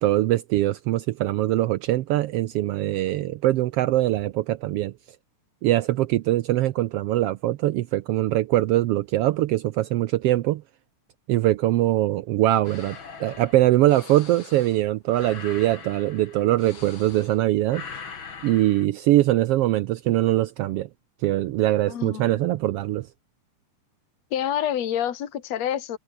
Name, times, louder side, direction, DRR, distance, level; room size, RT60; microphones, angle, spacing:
voice 1, 0.0-4.9 5.6-10.6 11.3-17.8 18.4-20.9 21.2-23.1, right 15 dB, 85° right, 1.3 m, -22 dB
sound 1, 12.6-17.4 17.7-18.9, left 5 dB, 40° left, 3.2 m, -42 dB
voice 2, 21.9-22.4 24.3-26.0, left 10 dB, 60° left, 3.2 m, -28 dB
omnidirectional pair, 3.5 m